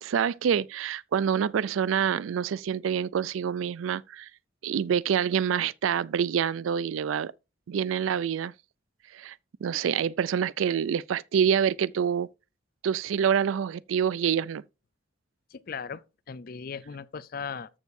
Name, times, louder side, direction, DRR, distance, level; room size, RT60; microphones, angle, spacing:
voice 1, 0.0-4.3 4.6-7.3 7.7-8.5 9.1-9.4 9.6-12.3 12.8-14.6, right 8 dB, 90° right, 0.4 m, -26 dB
voice 2, 15.5-17.7, left 6 dB, 50° left, 0.4 m, -38 dB
13.5 x 6.4 x 2.6 m
head